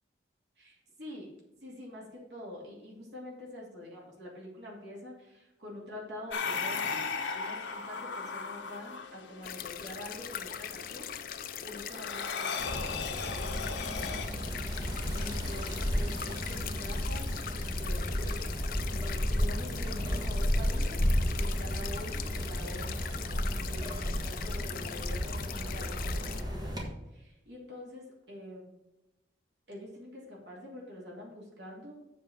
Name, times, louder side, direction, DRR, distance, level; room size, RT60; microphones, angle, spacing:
voice 1, 0.6-1.3 1.6-7.0 7.3-13.4 14.1-18.1 19.3-26.7 27.1-28.7 29.7-32.0, left 1 dB, 70° right, -3 dB, 2.6 m, -46 dB
sound 1, 6.3-14.3, left 5 dB, 80° left, 0.9 m, -37 dB
sound 2, 9.4-26.4, left 8 dB, 50° left, 0.5 m, -41 dB
sound 3, 12.6-26.8, equal, 20° right, 1.6 m, -33 dB
7.5 x 4.8 x 7.0 m, 0.96 s
head